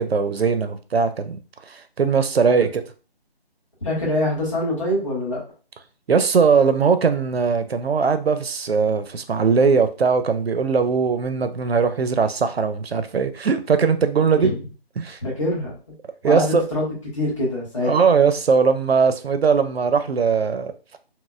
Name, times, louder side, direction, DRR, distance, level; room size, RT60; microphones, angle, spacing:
voice 1, 0.0-1.4 1.7-2.8 6.1-14.5 15.0-15.2 16.2-16.7 17.8-20.7, right 5 dB, 75° right, 0.5 m, -20 dB
voice 2, 3.8-5.4 14.3-14.6 15.2-15.7 16.2-16.9 17.1-17.9, left 1 dB, 30° left, 1.5 m, -24 dB
4.2 x 2.0 x 2.3 m
figure-of-eight pair, 175°, 31 cm